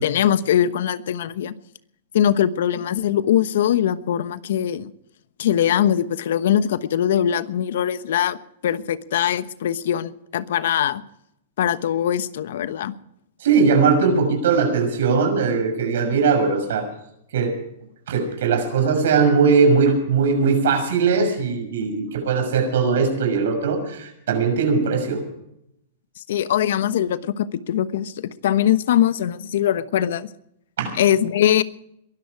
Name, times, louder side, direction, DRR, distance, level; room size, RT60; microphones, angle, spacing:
voice 1, 0.0-1.5 2.1-4.9 5.4-8.4 8.6-11.0 11.6-12.9 26.3-30.3 31.0-31.6, left 10 dB, 70° left, 14 dB, 1.1 m, -21 dB
voice 2, 13.4-16.9 17.3-17.5 18.1-25.2 30.8-31.0, right 5 dB, 75° right, 6 dB, 6.4 m, -20 dB
22.5 x 13.0 x 4.8 m, 0.78 s
hypercardioid pair, 130°, 0 cm